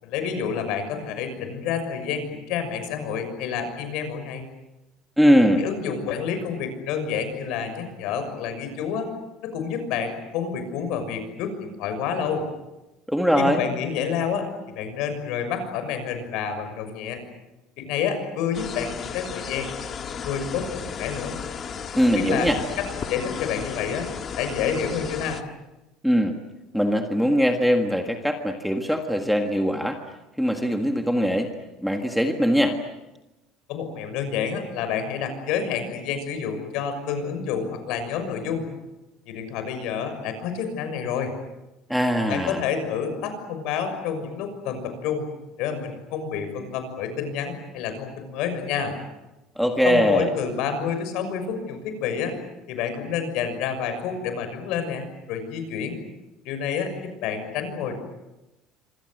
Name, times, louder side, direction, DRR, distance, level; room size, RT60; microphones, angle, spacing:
voice 1, 0.0-4.5 5.6-9.1 9.4-12.5 13.4-17.2 17.8-19.7 20.0-21.3 22.1-22.5 22.8-24.1 24.4-25.4 33.7-38.7 39.3-41.3 42.3-45.3 45.6-48.9 49.8-52.4 52.7-56.0 56.4-57.9, left 7 dB, 60° left, 8 dB, 6.4 m, -29 dB
voice 2, 5.2-5.6 13.1-13.6 22.0-22.6 26.0-26.3 26.7-30.0 30.4-31.5 31.8-32.8 41.9-42.6 49.5-50.3, equal, ahead, 4 dB, 1.7 m, -21 dB
sound 1, 18.5-25.4, left 7 dB, 30° left, 1.6 m, -34 dB
26.5 x 26.0 x 7.9 m, 1.0 s
cardioid pair, 175°, 0 cm